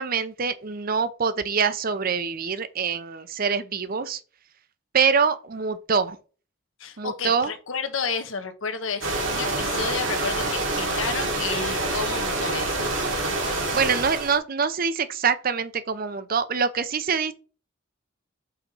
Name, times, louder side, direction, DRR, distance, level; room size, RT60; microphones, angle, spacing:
voice 1, 0.0-4.2 4.9-6.2 7.0-7.5 13.7-17.3, right 6 dB, 45° right, 0.6 m, -25 dB
voice 2, 6.8-12.9, left 5 dB, 85° left, 1.1 m, -31 dB
sound 1, 9.0-14.4, right 2 dB, 75° right, 2.4 m, -27 dB
5.7 x 4.2 x 5.4 m
head